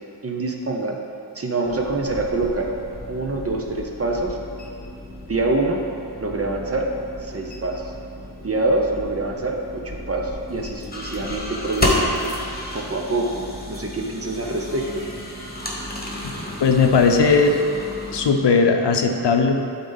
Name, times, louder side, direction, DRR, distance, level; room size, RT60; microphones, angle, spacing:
voice 1, 0.2-1.0 1.3-2.7 3.1-4.4 5.3-5.9 6.2-6.9 7.2-7.9 8.4-12.3 12.7-15.0, right 2 dB, 35° right, 1 dB, 0.8 m, -25 dB
sound 1, 1.6-18.3, left 1 dB, 20° left, 1.2 m, -31 dB
voice 2, 16.6-17.6 18.1-19.6, left 4 dB, 70° left, 4 dB, 0.7 m, -17 dB
11.5 x 4.0 x 4.0 m, 2.7 s
wide cardioid pair, 105°, 43 cm